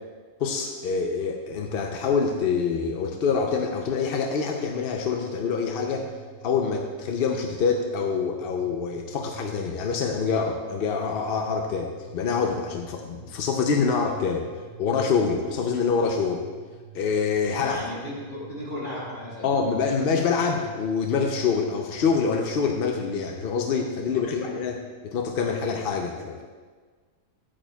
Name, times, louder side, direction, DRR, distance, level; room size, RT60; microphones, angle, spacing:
voice 1, 0.4-6.1 6.4-14.5 14.8-16.4 16.9-17.8 19.4-26.4, left 5 dB, 60° left, 3 dB, 0.6 m, -26 dB
sound 1, 4.6-24.2, right 4 dB, 65° right, 0.4 m, -48 dB
voice 2, 17.5-19.7 24.1-24.5, left 1 dB, 40° left, -6 dB, 2.6 m, -36 dB
10.0 x 8.5 x 2.3 m, 1.5 s
omnidirectional pair, 1.5 m